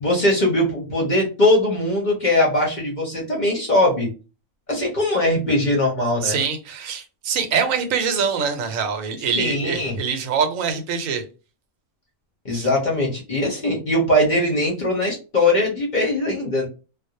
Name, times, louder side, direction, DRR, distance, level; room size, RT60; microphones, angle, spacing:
voice 1, 0.0-4.1 4.7-6.4 9.4-10.0 12.4-16.7, left 1 dB, 45° left, 0.7 m, -20 dB
voice 2, 6.2-11.2 12.5-12.7, right 6 dB, 85° right, 1.0 m, -24 dB
2.4 x 2.0 x 2.7 m
omnidirectional pair, 1.4 m